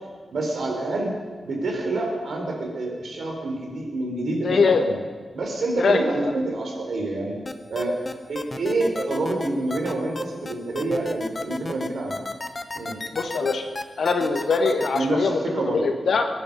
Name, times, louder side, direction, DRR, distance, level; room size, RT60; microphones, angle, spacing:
voice 1, 0.3-1.1 1.4-5.0 5.3-7.4 7.7-8.0 8.3-12.2 12.7-13.0 14.9-15.8, right 2 dB, 80° right, 0 dB, 4.2 m, -27 dB
voice 2, 4.4-4.8 5.8-6.3 13.1-16.3, left 4 dB, 80° left, 5 dB, 1.7 m, -23 dB
sound 1, 7.5-15.0, left 2 dB, 25° left, 0.8 m, -32 dB
24.0 x 10.5 x 5.5 m, 1.5 s
wide cardioid pair, 160°, 0 cm